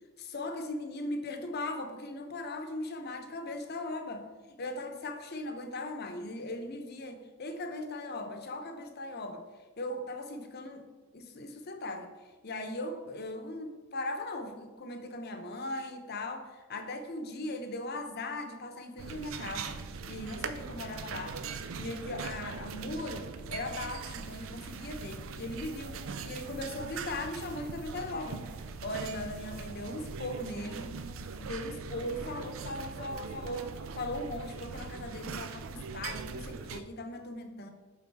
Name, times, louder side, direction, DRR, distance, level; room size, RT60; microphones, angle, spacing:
voice 1, 0.2-9.4 9.8-10.9 11.1-12.1 12.4-19.8 20.1-21.4 21.8-28.5 28.8-30.9 31.4-37.7, left 1 dB, 55° left, 6 dB, 0.8 m, -39 dB
sound 1, 19.0-36.8, right 5 dB, 85° right, 0.5 m, -41 dB
8.5 x 3.8 x 4.6 m, 1.3 s
head